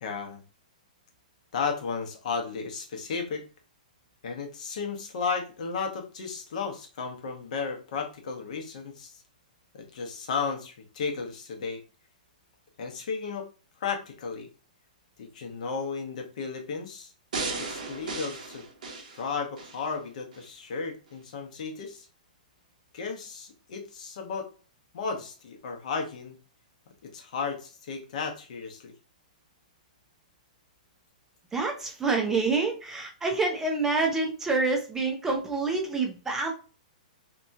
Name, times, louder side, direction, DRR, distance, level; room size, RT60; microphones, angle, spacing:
voice 1, 0.0-0.4 1.5-3.4 4.2-9.2 9.7-11.8 12.8-13.5 13.8-14.5 15.2-17.1 17.6-18.6 19.1-22.1 22.9-24.5 24.9-26.4 27.0-28.9, left 5 dB, 60° left, 3 dB, 0.8 m, -34 dB
sound 1, 17.3-19.8 20.3-20.4, right 3 dB, 75° right, 0.9 m, -35 dB
voice 2, 31.5-36.5, right 3 dB, 10° right, 1 dB, 0.4 m, -27 dB
2.8 x 2.3 x 2.6 m, 0.37 s
hypercardioid pair, 155°, 4 cm